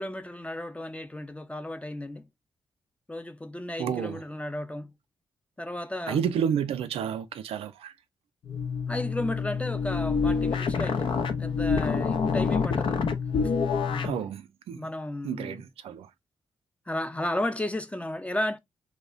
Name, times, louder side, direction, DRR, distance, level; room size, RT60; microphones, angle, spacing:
voice 1, 0.0-2.3 3.1-4.9 5.6-6.3 8.9-13.0 13.9-14.3 14.7-15.7 16.9-18.6, left 1 dB, 10° left, 0.5 m, -34 dB
voice 2, 3.8-4.2 6.1-7.9 14.0-14.4 14.7-14.8 15.2-16.1, right 8 dB, 70° right, 0.4 m, -30 dB
sound 1, 8.5-14.2, left 5 dB, 55° left, 0.5 m, -27 dB
2.3 x 2.0 x 3.6 m
hypercardioid pair, 40°, 10 cm